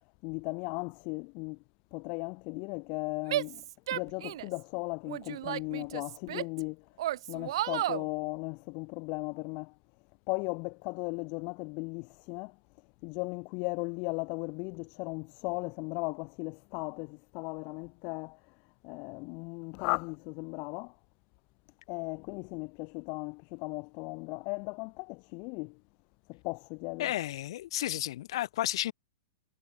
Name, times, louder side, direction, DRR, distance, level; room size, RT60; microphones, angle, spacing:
voice 1, 0.2-1.6 1.9-9.7 10.3-12.6 13.0-18.6 18.8-21.0 21.9-25.8 26.3-27.1, left 33 dB, 40° left, 1.3 m, -37 dB
Female speech woman speaking / Yell, 3.3-4.6 5.1-6.6 7.0-8.1, right 14 dB, 60° right, 0.6 m, -33 dB
voice 2, 27.0-28.9, left 14 dB, 60° left, 4.3 m, -32 dB
hypercardioid pair, 145°, 3 cm